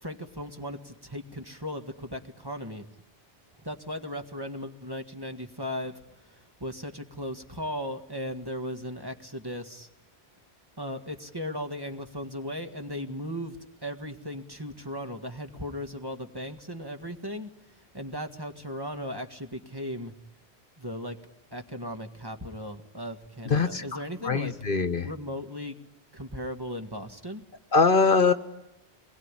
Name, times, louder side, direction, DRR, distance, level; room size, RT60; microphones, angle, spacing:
voice 1, 0.0-2.9 3.6-9.9 10.8-13.6 13.8-20.1 20.8-21.2 21.5-24.6 25.0-25.8 26.1-27.4, equal, 20° right, 5 dB, 1.9 m, -37 dB
voice 2, 23.5-25.1 27.7-28.3, left 4 dB, 55° left, 10 dB, 1.3 m, -23 dB
28.0 x 21.5 x 9.9 m, 0.97 s
omnidirectional pair, 1.1 m